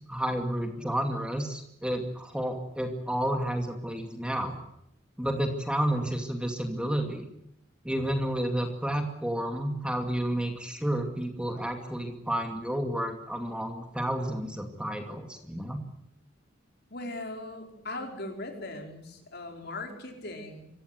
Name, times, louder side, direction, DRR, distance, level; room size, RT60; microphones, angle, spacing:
voice 1, 0.1-4.6 5.2-7.3 7.8-15.8, right 1 dB, 5° right, 5 dB, 2.4 m, -31 dB
voice 2, 16.9-20.7, left 2 dB, 55° left, 3 dB, 4.9 m, -39 dB
26.0 x 16.0 x 9.8 m, 0.79 s
head